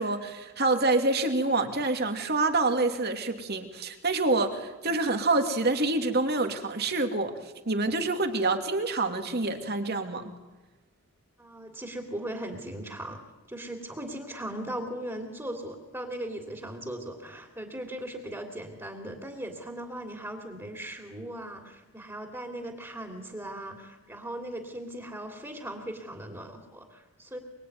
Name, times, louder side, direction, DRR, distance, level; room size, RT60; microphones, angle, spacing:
voice 1, 0.0-7.4 7.7-10.3, right 2 dB, 45° right, 5 dB, 2.7 m, -27 dB
voice 2, 11.4-13.2 13.5-27.4, right 1 dB, 10° right, 3 dB, 3.1 m, -38 dB
25.0 x 24.0 x 9.6 m, 1.1 s
head